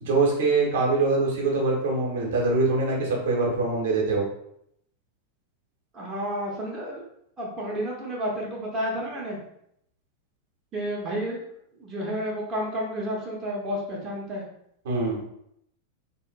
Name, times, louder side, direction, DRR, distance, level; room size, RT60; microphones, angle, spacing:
voice 1, 0.0-4.3 14.8-15.2, right 3 dB, 55° right, -2 dB, 0.8 m, -23 dB
voice 2, 5.9-7.0 7.4-9.4 10.7-11.4 11.8-14.4, equal, 25° right, -3 dB, 0.6 m, -31 dB
2.7 x 2.4 x 2.2 m, 0.74 s
figure-of-eight pair, 90°, 0 cm